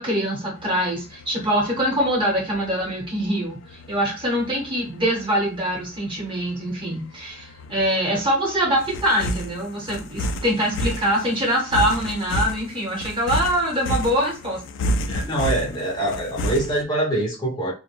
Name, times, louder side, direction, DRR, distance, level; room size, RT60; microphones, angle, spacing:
voice 1, 0.0-3.6 3.9-14.6, equal, 25° right, 1.0 m, -23 dB
sound 1, 0.6-16.8, equal, 60° left, 0.3 m, -31 dB
voice 2, 15.1-17.7, right 1 dB, 20° left, 0.6 m, -24 dB
2.2 x 2.1 x 2.9 m
head